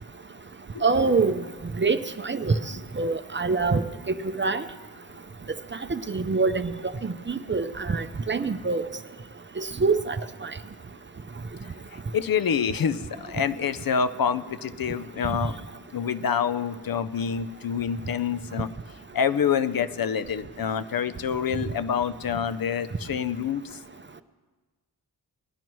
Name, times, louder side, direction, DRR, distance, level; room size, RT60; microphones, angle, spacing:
voice 1, 0.8-1.4 1.8-2.6 3.0-3.8 4.4-4.6 5.9-6.7 7.0-8.8 9.6-10.2 10.4-10.5, right 4 dB, 30° right, 9 dB, 0.5 m, -25 dB
voice 2, 12.1-15.6 15.9-18.7 19.1-23.8, left 7 dB, 65° left, 13 dB, 0.6 m, -27 dB
19.0 x 12.0 x 3.1 m, 1.3 s
wide cardioid pair, 70°, 38 cm